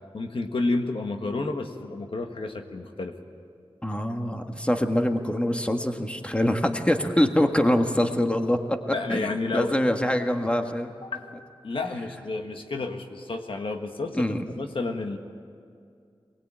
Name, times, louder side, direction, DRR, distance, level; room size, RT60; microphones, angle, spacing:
voice 1, 0.1-3.1 8.9-9.8 11.0-15.2, left 3 dB, 70° left, 4 dB, 1.6 m, -31 dB
voice 2, 3.8-10.9 14.2-14.4, left 1 dB, 10° left, 5 dB, 1.6 m, -24 dB
23.5 x 20.0 x 8.9 m, 2.3 s
wide cardioid pair, 60°, 9 cm